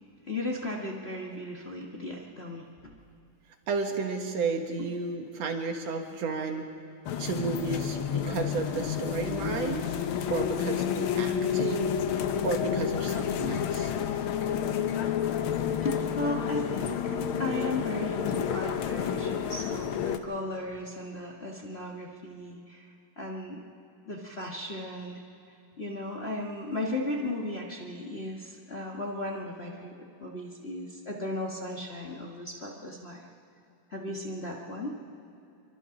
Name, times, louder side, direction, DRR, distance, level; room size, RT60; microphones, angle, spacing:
voice 1, 0.3-3.0 15.8-22.9 23.2-23.6 24.1-25.2 25.8-29.9 30.2-33.3 33.9-35.0, left 1 dB, 30° left, -2 dB, 1.2 m, -36 dB
voice 2, 3.7-6.7 7.2-9.8 10.3-11.9 12.4-13.9, right 4 dB, 60° right, 4 dB, 2.6 m, -32 dB
sound 1, 7.1-20.2, left 8 dB, 75° left, 1.2 m, -30 dB
29.0 x 24.0 x 3.9 m, 2.7 s
omnidirectional pair, 3.4 m